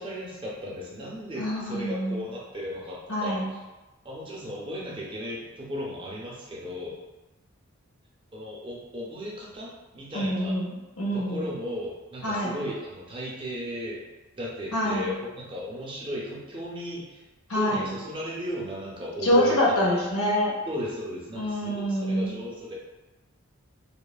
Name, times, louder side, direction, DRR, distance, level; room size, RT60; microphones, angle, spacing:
voice 1, 0.0-3.4 4.0-7.0 8.3-10.6 11.1-14.0 14.4-17.2 17.5-19.6 19.8-20.1 20.6-22.7, equal, 25° right, -5 dB, 0.5 m, -35 dB
voice 2, 1.4-2.2 3.1-3.4 10.1-11.5 12.2-12.6 14.7-15.1 17.5-17.9 19.2-20.5 21.3-22.3, equal, 80° left, -3 dB, 0.7 m, -25 dB
3.0 x 2.0 x 2.3 m, 1.1 s
head